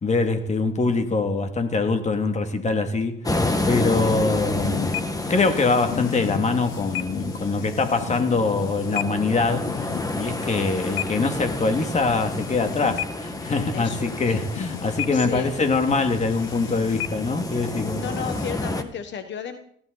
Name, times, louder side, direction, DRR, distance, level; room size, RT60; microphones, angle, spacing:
voice 1, 0.0-5.0 5.3-18.0, left 3 dB, 35° left, 2.4 m, -24 dB
sound 1, 3.2-18.8, left 2 dB, 20° left, 1.6 m, -30 dB
sound 2, 4.5-18.5, left 13 dB, 85° left, 0.6 m, -35 dB
voice 2, 13.7-14.4 15.1-15.5 17.9-19.6, left 7 dB, 65° left, 1.5 m, -33 dB
20.0 x 15.5 x 4.1 m
cardioid pair, 90°, 20 cm